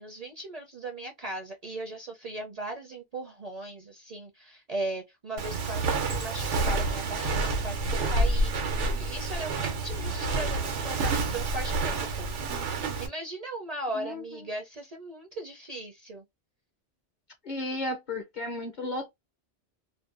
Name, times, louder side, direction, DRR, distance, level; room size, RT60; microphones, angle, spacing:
voice 1, 0.0-8.5 9.0-12.3 13.0-16.2, right 2 dB, 50° right, 0.5 m, -38 dB
Walk footsteps, 5.4-13.1, right 3 dB, 85° right, 1.1 m, -28 dB
voice 2, 17.4-19.1, left 2 dB, 50° left, 0.6 m, -33 dB
2.5 x 2.1 x 2.4 m
omnidirectional pair, 1.2 m